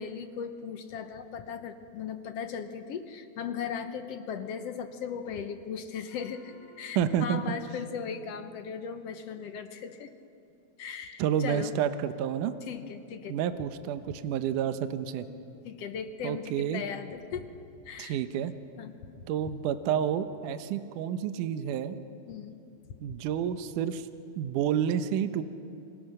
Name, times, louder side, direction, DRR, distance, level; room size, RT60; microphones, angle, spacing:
voice 1, 0.0-10.1 10.8-11.7 12.7-13.4 15.6-17.5 17.8-18.2 18.8-19.1 22.3-22.6, left 7 dB, 65° left, 8 dB, 1.7 m, -38 dB
Gong, 6.1-9.0, left 1 dB, 85° left, 8.9 m, -60 dB
voice 2, 7.0-7.4 11.2-12.5 13.3-15.3 16.2-16.8 18.0-18.5 19.3-22.0 23.0-24.1 24.4-25.4, right 9 dB, 75° right, 10 dB, 2.3 m, -29 dB
30.0 x 25.5 x 6.5 m, 2.7 s
omnidirectional pair, 4.0 m